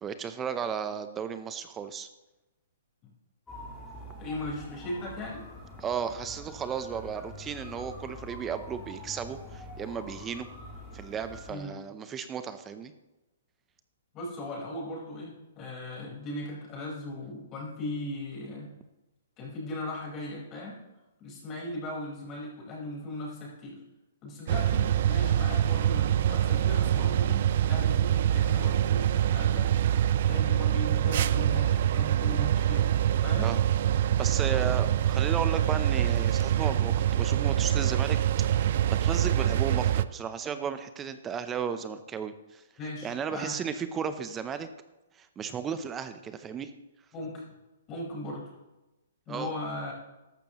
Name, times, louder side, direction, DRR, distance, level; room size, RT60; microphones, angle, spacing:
voice 1, 0.0-2.1 5.8-10.5 10.9-12.9 33.4-33.6 34.2-38.2 38.5-42.6 43.0-44.7 45.1-46.7 49.3-49.5, right 7 dB, 15° right, 11 dB, 0.6 m, -34 dB
sound 1, 3.5-11.5, left 1 dB, 10° left, 3.2 m, -45 dB
voice 2, 4.2-5.4 11.5-11.8 14.1-18.7 19.4-20.8 21.2-23.8 24.2-29.7 30.3-32.9 33.2-33.5 42.8-43.6 47.1-47.4 47.9-48.5 49.3-49.9, left 1 dB, 25° left, -3 dB, 4.5 m, -38 dB
sound 2, 24.5-40.0, right 10 dB, 55° right, 0.4 m, -25 dB
14.0 x 12.0 x 3.0 m, 1.0 s
hypercardioid pair, 145°, 0 cm